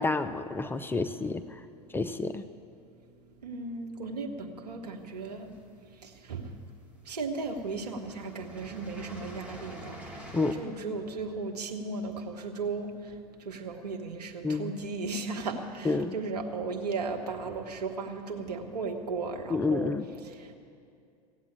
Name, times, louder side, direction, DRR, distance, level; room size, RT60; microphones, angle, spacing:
voice 1, 0.0-1.4 1.9-2.4 10.3-10.5 14.4-14.7 15.8-16.1 19.5-20.0, left 3 dB, 10° left, 8 dB, 0.5 m, -29 dB
voice 2, 3.4-5.5 6.0-6.5 7.0-13.1 13.4-19.9 20.2-20.5, right 4 dB, 75° right, 3 dB, 1.4 m, -36 dB
sound 1, 5.2-6.0 6.9-7.0 7.3-10.5, equal, 5° right, 2.3 m, -46 dB
16.5 x 8.3 x 8.5 m, 2.4 s
figure-of-eight pair, 85°, 20 cm